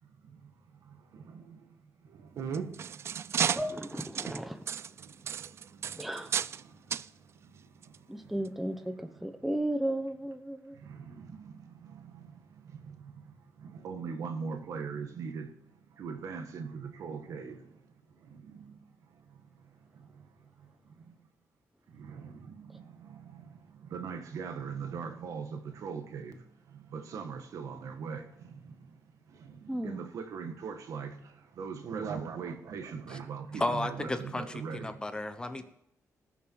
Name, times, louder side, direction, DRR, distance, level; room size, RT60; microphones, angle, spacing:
sound 1, 2.4-6.6 6.9-7.1 7.8-8.0 8.5-8.6, right 8 dB, 50° right, 0.4 m, -34 dB
voice 1, 2.4-2.7 13.8-15.5 16.0-17.5 23.9-26.3 26.9-28.2 29.8-31.1 31.6-34.8, right 6 dB, 70° right, 1.8 m, -38 dB
voice 2, 3.5-4.6 5.9-6.4 8.1-10.8 29.7-30.0, right 1 dB, 5° right, 0.7 m, -34 dB
voice 3, 33.6-35.7, left 2 dB, 15° left, 1.0 m, -33 dB
19.0 x 7.0 x 4.7 m
cardioid pair, 135°, 6 cm